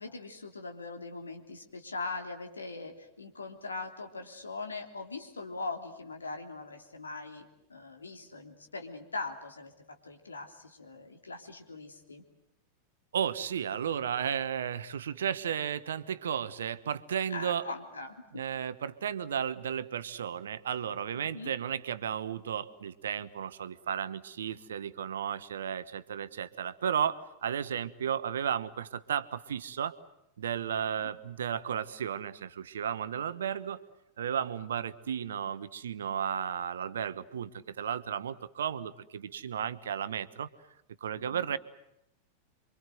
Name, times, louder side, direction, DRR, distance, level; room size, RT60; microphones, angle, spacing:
voice 1, 0.0-12.2 17.3-18.4 21.1-21.5 30.9-31.1 41.1-41.5, left 3 dB, 75° left, 5 dB, 3.3 m, -41 dB
voice 2, 13.1-17.7 18.3-29.9 30.4-33.8 34.2-40.5 41.0-41.6, right 8 dB, 65° right, 14 dB, 1.2 m, -34 dB
28.0 x 24.5 x 8.0 m, 0.83 s
figure-of-eight pair, 90°, 0 cm